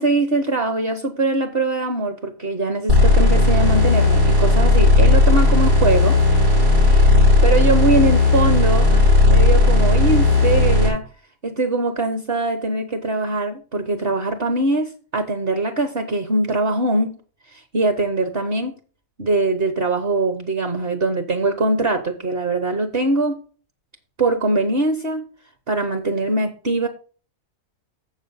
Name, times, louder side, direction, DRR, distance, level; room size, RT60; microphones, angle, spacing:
voice 1, 0.0-6.2 6.9-9.0 9.3-11.1 11.4-17.2 17.5-18.7 19.2-23.4 24.2-25.2 25.7-26.9, right 2 dB, 45° right, 7 dB, 1.2 m, -22 dB
sound 1, 2.9-10.9, left 2 dB, 85° right, 6.0 m, -14 dB
7.3 x 7.3 x 5.5 m, 0.38 s
omnidirectional pair, 1.4 m